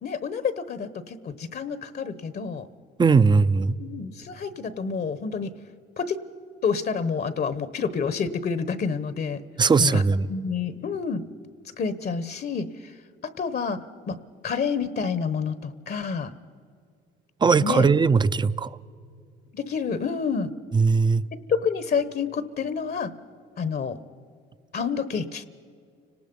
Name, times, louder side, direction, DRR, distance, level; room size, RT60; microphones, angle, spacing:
voice 1, 0.0-2.7 3.8-5.5 6.0-6.2 6.6-9.4 9.8-10.0 10.3-11.2 11.8-12.9 13.2-14.2 14.4-16.3 17.6-17.9 19.5-20.5 21.3-23.1 23.6-24.0 24.7-25.5, left 5 dB, 50° left, 1.0 m, -28 dB
voice 2, 3.0-3.8 9.6-10.3 17.4-18.8 20.7-21.3, right 4 dB, 25° right, 0.5 m, -19 dB
30.0 x 19.0 x 5.4 m
cardioid pair, 90°, 20 cm